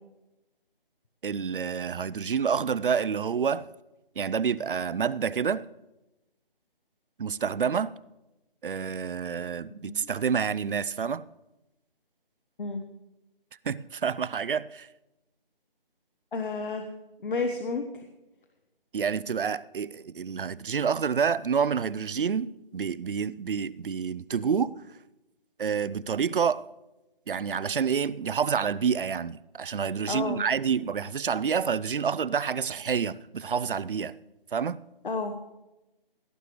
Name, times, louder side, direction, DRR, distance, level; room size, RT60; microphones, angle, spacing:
voice 1, 1.2-3.7 4.2-5.7 7.2-7.9 8.6-11.2 13.6-14.9 18.9-24.7 25.6-26.7 27.3-34.1 34.5-34.8, right 6 dB, 65° right, 0.5 m, -28 dB
voice 2, 16.3-16.9 17.2-18.1 30.1-30.4 35.0-35.3, left 3 dB, 60° left, 1.2 m, -31 dB
17.5 x 10.5 x 3.2 m
figure-of-eight pair, 160°, 29 cm